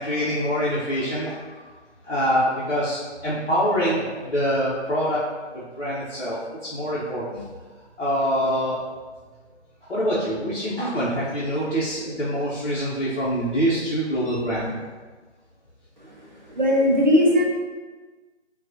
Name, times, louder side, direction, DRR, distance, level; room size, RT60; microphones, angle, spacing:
voice 1, 0.0-1.6 2.0-5.2 5.5-6.4 6.7-7.4 8.0-8.8 9.9-14.7, equal, 60° left, -9 dB, 0.9 m, -25 dB
voice 2, 16.5-17.4, left 1 dB, 40° right, -3 dB, 0.5 m, -18 dB
3.7 x 2.3 x 2.6 m, 1.4 s
figure-of-eight pair, 170°, 36 cm